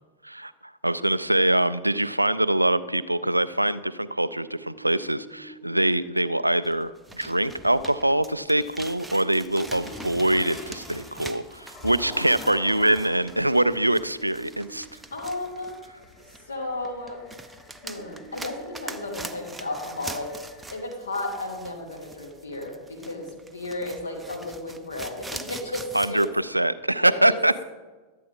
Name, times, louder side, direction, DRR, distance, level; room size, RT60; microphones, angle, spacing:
voice 1, 0.2-14.9 25.9-27.5, right 1 dB, 85° right, 15 dB, 0.3 m, -24 dB
sound 1, 4.6-5.9 9.0-10.4 13.5-14.9 18.0-19.4, right 2 dB, 60° left, 2.1 m, -47 dB
sound 2, 6.6-16.5 16.8-26.3, right 2 dB, 10° right, 0.5 m, -43 dB
sound 3, 7.1-8.1 8.5-20.8, left 2 dB, 40° left, 3.5 m, -46 dB
voice 2, 15.1-15.7 16.5-17.2 17.8-20.3 20.7-23.3 23.5-26.2 27.0-27.4, left 2 dB, 75° left, 1 dB, 2.1 m, -33 dB
12.0 x 8.4 x 3.7 m, 1.3 s
figure-of-eight pair, 90°, 0 cm